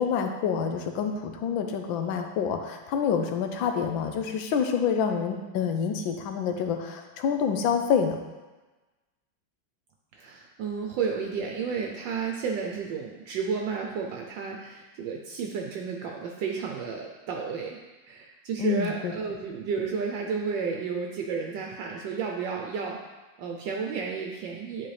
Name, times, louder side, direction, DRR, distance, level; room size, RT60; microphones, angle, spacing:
voice 1, 0.0-8.2 18.6-19.1, left 7 dB, 85° left, 5 dB, 1.4 m, -27 dB
voice 2, 10.1-17.8 18.0-23.0 23.4-24.9, right 5 dB, 75° right, 1 dB, 1.3 m, -32 dB
10.5 x 4.4 x 3.3 m, 1.2 s
omnidirectional pair, 2.1 m